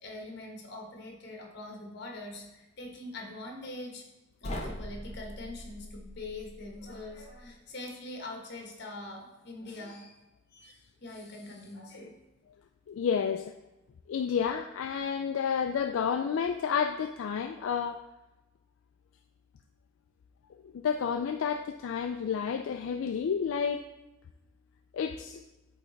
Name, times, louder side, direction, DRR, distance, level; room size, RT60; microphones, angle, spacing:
voice 1, 0.0-4.0 4.4-10.2 10.5-12.2, left 2 dB, 55° left, 1 dB, 1.3 m, -43 dB
sound 1, 4.4-7.5, left 1 dB, 30° left, 0.8 m, -42 dB
voice 2, 12.9-13.5 14.1-18.0 20.6-23.8 24.9-25.4, left 7 dB, 80° left, 5 dB, 0.3 m, -30 dB
8.3 x 3.3 x 3.9 m, 1.0 s
head